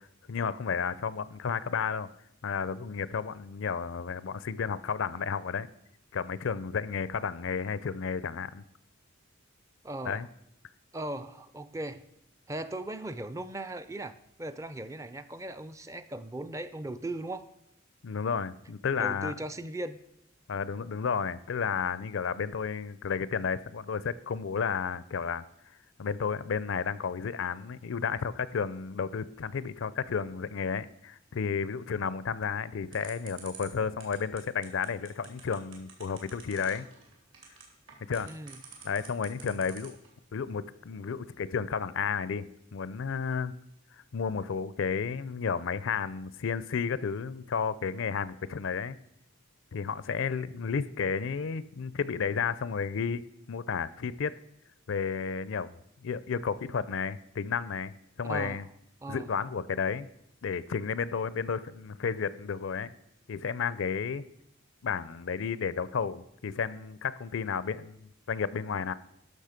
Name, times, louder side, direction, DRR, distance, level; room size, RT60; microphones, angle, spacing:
voice 1, 0.3-2.1 2.4-5.7 6.1-8.6 10.0-10.3 18.0-19.3 20.5-25.4 26.0-36.9 38.1-38.3 38.8-40.0 40.3-43.5 44.1-49.0 49.7-53.2 53.5-54.3 54.9-55.7 56.0-58.7 59.1-60.1 60.4-62.9 63.3-64.2 64.8-68.9, left 6 dB, 65° left, 17 dB, 0.4 m, -32 dB
voice 2, 9.8-10.2 10.9-12.0 12.5-17.5 19.0-20.0 38.3-38.6 58.2-58.6 59.0-59.3, right 1 dB, 15° right, 12 dB, 0.4 m, -38 dB
sound 1, 32.9-40.1, right 7 dB, 70° right, 2.6 m, -48 dB
12.0 x 6.3 x 5.0 m, 0.76 s
head